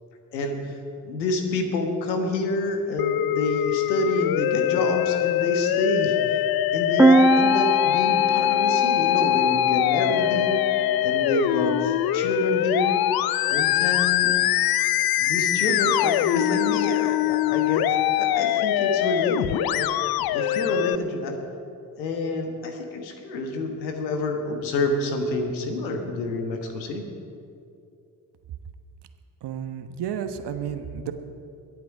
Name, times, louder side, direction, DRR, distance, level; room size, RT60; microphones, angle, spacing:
voice 1, 0.3-6.4 6.7-10.7 11.0-13.0 13.5-14.3 15.2-19.9 20.3-21.4 22.0-27.1, left 2 dB, 85° left, 4 dB, 1.4 m, -28 dB
Musical instrument, 3.0-21.0, left 13 dB, 50° left, 0.6 m, -23 dB
sound 1, 7.0-10.7, right 3 dB, 5° right, 0.4 m, -23 dB
voice 2, 29.4-31.1, right 8 dB, 55° right, 8 dB, 1.2 m, -32 dB
22.5 x 8.6 x 4.8 m, 2.5 s
hypercardioid pair, 50°, 50 cm